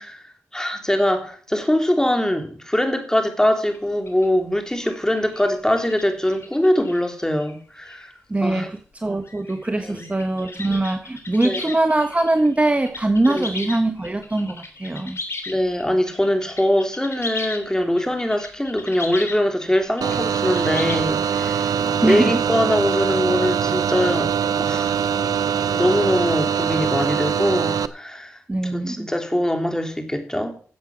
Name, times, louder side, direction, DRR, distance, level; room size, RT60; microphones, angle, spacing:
voice 1, 0.0-8.1 8.4-8.7 9.8-10.1 11.4-11.7 13.3-13.5 15.5-24.3 24.6-25.0 25.7-30.6, left 1 dB, 10° left, 3.2 m, -22 dB
sound 1, 3.7-3.8 4.1-4.3 4.7-7.6 7.8-8.1 8.6-8.7 9.1-21.0, left 3 dB, 45° left, 3.4 m, -36 dB
voice 2, 8.3-15.2 22.0-22.4 28.5-29.1, right 2 dB, 20° right, 1.2 m, -22 dB
sound 2, 20.0-27.9, right 7 dB, 80° right, 0.7 m, -22 dB
12.5 x 7.8 x 6.1 m
cardioid pair, 55°, 6 cm